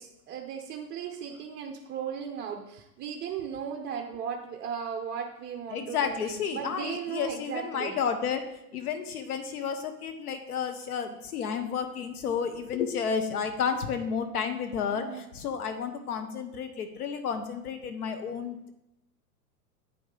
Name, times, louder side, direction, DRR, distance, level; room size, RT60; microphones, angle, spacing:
voice 1, 0.0-8.0 14.9-15.3, right 7 dB, 25° right, 3 dB, 0.6 m, -36 dB
voice 2, 5.7-8.4 8.7-18.7, left 6 dB, 70° left, 8 dB, 1.0 m, -31 dB
9.3 x 5.1 x 3.8 m, 0.87 s
hypercardioid pair, 100°, 46 cm